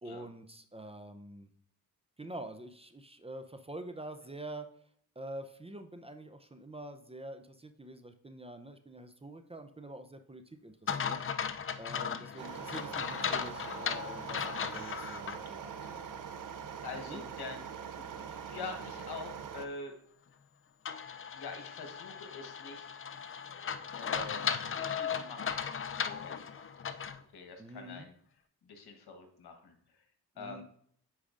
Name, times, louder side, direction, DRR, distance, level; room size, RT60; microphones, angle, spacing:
voice 1, 0.0-1.5 2.2-4.7 5.2-11.2 11.8-16.0 17.1-17.2 27.6-28.1 30.4-30.6, right 1 dB, 15° right, 8 dB, 0.6 m, -46 dB
sound 1, 10.9-15.4 15.8-15.9 20.9-27.2, left 7 dB, 35° left, 0.5 m, -36 dB
voice 2, 12.0-12.3 15.4-15.8 16.8-17.7 18.0-19.9 21.3-23.0 23.9-28.1 28.6-29.7 30.4-30.6, left 3 dB, 75° left, 5 dB, 1.3 m, -46 dB
sound 2, 12.4-19.7, right 7 dB, 55° right, 0.6 m, -43 dB
8.5 x 4.8 x 2.5 m, 0.64 s
cardioid pair, 65°, 38 cm